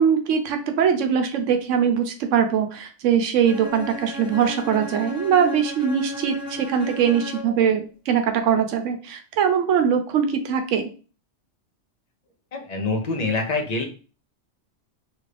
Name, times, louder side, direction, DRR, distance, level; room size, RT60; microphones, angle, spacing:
voice 1, 0.0-10.9, right 7 dB, 85° right, 6 dB, 0.9 m, -22 dB
Bowed string instrument, 3.4-7.7, equal, 5° right, 0.6 m, -35 dB
voice 2, 12.5-13.8, left 3 dB, 50° left, 4 dB, 0.5 m, -25 dB
2.9 x 2.5 x 3.2 m, 0.36 s
omnidirectional pair, 1.2 m